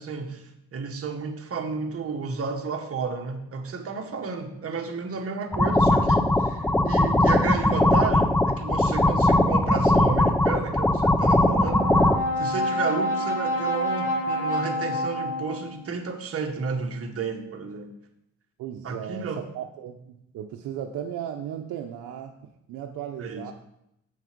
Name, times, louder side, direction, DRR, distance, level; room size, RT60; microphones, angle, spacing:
voice 1, 0.0-11.9 12.4-17.9 18.8-19.4 23.2-23.5, right 4 dB, 50° right, 3 dB, 1.6 m, -32 dB
sound 1, 5.5-12.2, left 1 dB, 5° left, 0.5 m, -20 dB
Brass instrument, 11.5-15.9, equal, 45° left, 1.9 m, -28 dB
voice 2, 18.6-22.4 22.7-23.5, right 9 dB, 85° right, 3 dB, 0.7 m, -36 dB
7.9 x 6.4 x 5.2 m, 0.81 s
cardioid pair, 90°, 30 cm